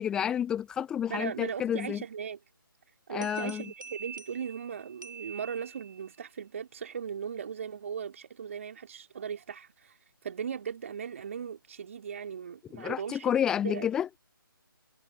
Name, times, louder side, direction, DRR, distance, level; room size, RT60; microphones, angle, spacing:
voice 1, 0.0-2.0 3.1-3.6 12.7-14.1, left 9 dB, 5° left, 0.8 m, -30 dB
voice 2, 1.1-2.4 3.1-10.0 10.2-13.3 13.6-13.9, right 7 dB, 35° right, 3.3 m, -38 dB
sound 1, 3.2-6.2, right 6 dB, 60° right, 6.7 m, -46 dB
figure-of-eight pair, 150°, 12 cm